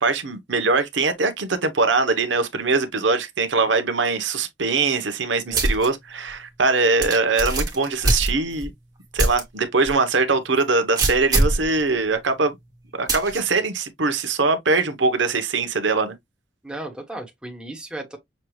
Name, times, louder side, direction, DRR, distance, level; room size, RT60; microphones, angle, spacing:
voice 1, 0.0-8.7 9.1-12.6 12.9-16.2, right 3 dB, 85° right, 1.0 m, -22 dB
sound 1, 5.5-5.9 6.3-6.4 7.0-8.7 9.2-9.4 9.9-10.0 11.0-11.6 13.1-13.4, right 2 dB, 20° right, 1.3 m, -22 dB
voice 2, 16.6-18.2, right 1 dB, 5° right, 1.2 m, -35 dB
6.5 x 2.3 x 3.1 m
head